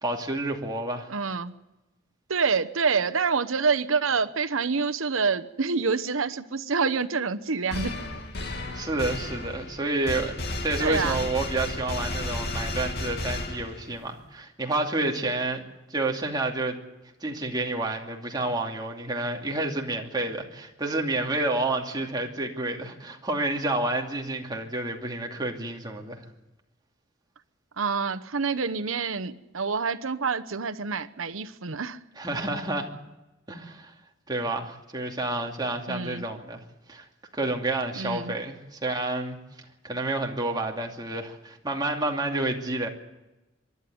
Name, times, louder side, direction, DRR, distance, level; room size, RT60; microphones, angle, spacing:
voice 1, 0.0-1.1 8.4-10.3 10.6-15.6 15.9-16.8 17.2-26.2 32.2-32.9 33.5-33.9 34.3-36.6 36.9-37.1 37.3-39.4 39.8-42.9, right 2 dB, 20° right, 1 dB, 2.6 m, -29 dB
voice 2, 1.1-1.6 2.3-8.0 10.8-11.3 27.8-32.0 35.9-36.2 38.0-38.4, right 5 dB, 85° right, 10 dB, 1.0 m, -27 dB
sound 1, 7.7-14.0, left 2 dB, 55° left, 2.2 m, -33 dB
24.5 x 12.5 x 9.4 m, 1.0 s
head